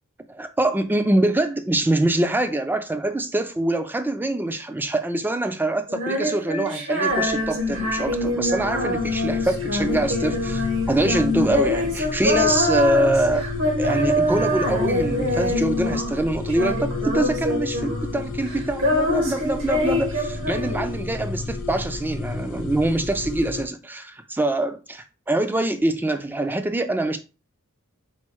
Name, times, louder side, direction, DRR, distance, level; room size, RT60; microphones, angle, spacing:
voice 1, 0.3-13.5 13.8-27.2, right 1 dB, 10° right, 0.3 m, -24 dB
Female singing, 5.9-16.2 16.5-18.2 18.4-21.1, left 1 dB, 65° right, 1.1 m, -25 dB
sound 1, 7.1-23.7, left 3 dB, 65° left, 0.7 m, -32 dB
4.3 x 2.0 x 4.5 m
head